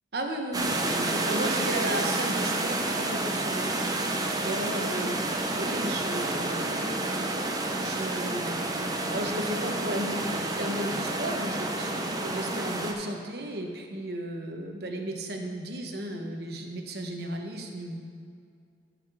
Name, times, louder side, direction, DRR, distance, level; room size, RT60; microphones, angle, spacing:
voice 1, 0.1-3.8 4.4-5.2 5.5-7.4 7.8-18.0, right 1 dB, 60° right, 3 dB, 1.1 m, -34 dB
sound 1, 0.5-12.9, right 2 dB, 20° right, 0.7 m, -29 dB
13.5 x 4.9 x 4.9 m, 2.3 s
head